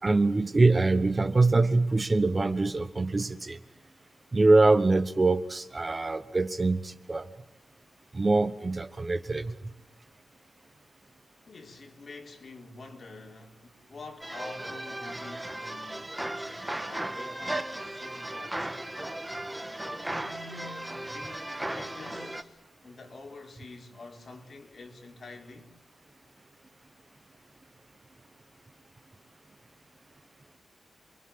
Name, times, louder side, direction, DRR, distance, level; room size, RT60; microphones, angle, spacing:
voice 1, 0.0-3.6 4.3-7.3 8.1-9.7, right 3 dB, 25° right, 1.1 m, -24 dB
voice 2, 11.5-18.8 19.8-25.7, left 3 dB, 50° left, 4.1 m, -47 dB
sound 1, 14.2-22.4, right 1 dB, 10° right, 1.7 m, -36 dB
28.5 x 24.0 x 8.7 m
wide cardioid pair, 145°, 0 cm